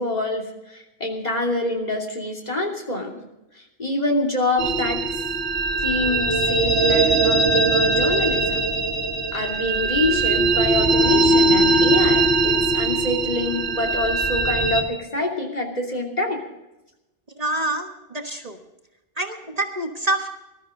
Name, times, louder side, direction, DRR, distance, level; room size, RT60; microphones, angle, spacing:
voice 1, 0.0-3.3 3.5-5.0 5.8-8.6 9.3-16.4, left 2 dB, 40° left, 2 dB, 3.0 m, -26 dB
sound 1, 4.6-14.8, right 2 dB, 80° right, 2.0 m, -20 dB
voice 2, 17.4-18.6 19.2-20.3, right 1 dB, 40° right, 4 dB, 1.4 m, -26 dB
20.5 x 13.0 x 3.8 m, 0.95 s
omnidirectional pair, 1.0 m